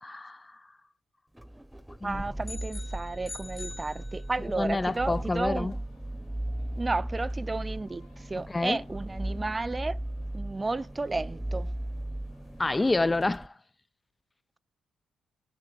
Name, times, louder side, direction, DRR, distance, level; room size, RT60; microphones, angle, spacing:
voice 1, 0.0-0.6 2.0-2.2 4.6-5.7 8.4-8.8 12.6-13.5, left 2 dB, 20° left, 0.4 m, -28 dB
sound 1, 1.3-13.5, right 1 dB, 5° right, 0.9 m, -37 dB
voice 2, 2.0-5.8 6.8-10.0 10.3-11.7, right 3 dB, 25° right, 0.6 m, -32 dB
sound 2, 2.4-4.6, left 3 dB, 40° left, 1.4 m, -44 dB
sound 3, 5.0-13.1, left 6 dB, 85° left, 1.6 m, -62 dB
6.8 x 6.5 x 6.9 m
hypercardioid pair, 50°, 0 cm